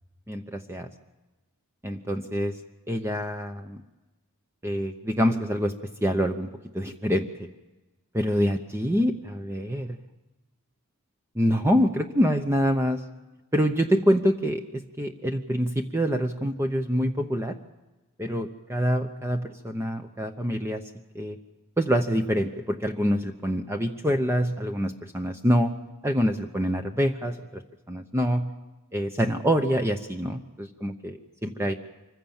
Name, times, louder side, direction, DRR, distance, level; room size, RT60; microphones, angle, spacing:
voice 1, 0.3-0.9 1.8-2.6 2.9-3.8 4.6-5.7 6.0-6.5 6.7-7.5 8.1-10.0 11.3-13.0 13.5-17.6 18.2-20.8 21.1-21.4 21.8-25.7 26.0-27.6 27.9-28.5 28.9-31.7, equal, 10° right, 6 dB, 0.8 m, -26 dB
25.0 x 15.0 x 7.2 m, 1.1 s
head